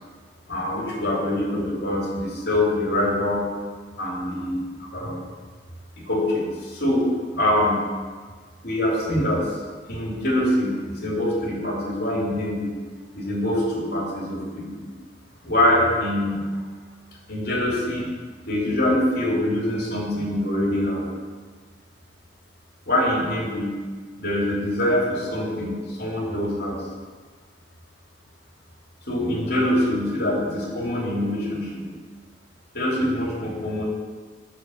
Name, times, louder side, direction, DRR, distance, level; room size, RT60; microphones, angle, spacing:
voice 1, 0.5-3.5 4.0-4.6 4.9-5.2 6.0-7.1 7.3-7.8 8.6-9.6 9.9-12.7 13.1-14.7 15.4-16.4 17.3-18.1 18.5-21.0 22.9-23.8 24.2-26.8 29.1-31.8 32.7-33.8, left 1 dB, 55° left, -3 dB, 2.9 m, -24 dB
9.6 x 6.4 x 7.2 m, 1.5 s
head